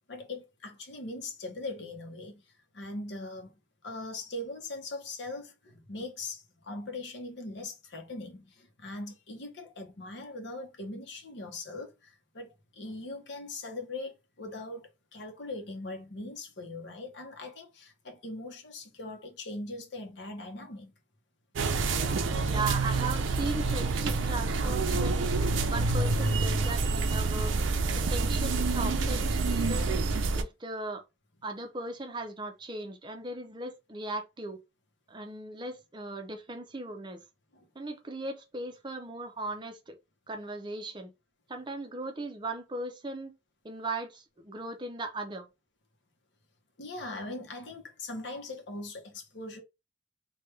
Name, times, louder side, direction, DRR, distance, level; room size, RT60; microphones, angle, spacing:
voice 1, 0.1-2.4 2.7-3.5 3.8-20.9 37.5-37.7 46.8-49.6, left 2 dB, 60° left, 0.8 m, -41 dB
sound 1, 21.6-30.4, right 3 dB, 75° right, 0.5 m, -27 dB
voice 2, 22.5-25.3 25.7-27.5 27.9-30.0 30.4-31.0 31.4-34.6 35.1-37.2 37.8-40.0 40.3-41.1 41.5-43.3 43.6-45.5, right 2 dB, 25° right, 0.5 m, -38 dB
3.2 x 2.2 x 3.2 m
head